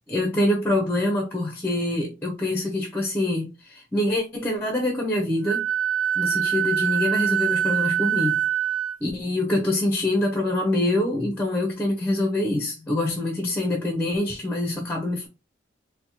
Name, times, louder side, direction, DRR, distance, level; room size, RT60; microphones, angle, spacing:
voice 1, 0.1-5.7 6.1-8.4 9.0-15.3, left 1 dB, 10° left, 0.6 m, -25 dB
Wind instrument woodwind instrument, 5.4-9.0, right 10 dB, 75° right, 0.8 m, -24 dB
4.0 x 2.1 x 2.8 m
head